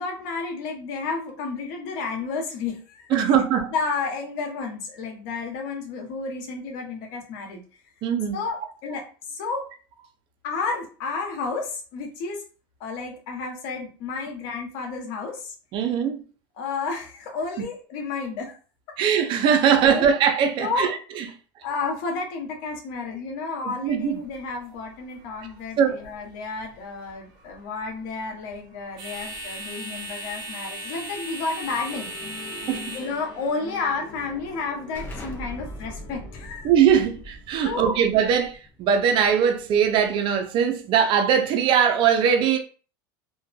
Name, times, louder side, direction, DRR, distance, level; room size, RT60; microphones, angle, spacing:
voice 1, 0.0-3.3 3.7-7.6 8.3-9.7 10.4-12.4 12.8-15.5 16.6-18.5 19.8-20.1 20.6-20.9 21.6-32.1 32.4-32.5 32.9-36.7 37.6-38.1, left 4 dB, 65° left, 0.9 m, -31 dB
voice 2, 3.1-3.7 8.0-8.4 15.7-16.2 19.0-21.2 23.6-24.2 25.8-26.0 32.7-32.9 36.6-42.6, right 8 dB, 45° right, 0.5 m, -21 dB
sound 1, 23.8-35.1, right 1 dB, 75° right, 0.9 m, -40 dB
Musical instrument, 31.6-38.2, left 3 dB, 40° left, 1.0 m, -45 dB
Explosion, 34.9-40.3, left 1 dB, 20° left, 0.6 m, -41 dB
2.5 x 2.2 x 2.3 m
supercardioid pair, 105°, 11 cm